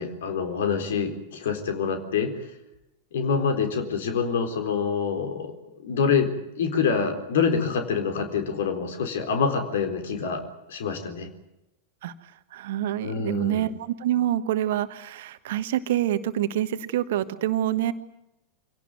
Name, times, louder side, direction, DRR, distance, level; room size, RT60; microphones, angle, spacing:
voice 1, 0.0-2.3 3.1-6.3 6.6-10.4 10.7-11.3 13.0-13.7, left 6 dB, 60° left, 7 dB, 3.9 m, -26 dB
voice 2, 12.5-17.9, right 12 dB, 55° right, 12 dB, 1.3 m, -26 dB
25.5 x 17.5 x 9.2 m, 0.90 s
figure-of-eight pair, 90°, 0 cm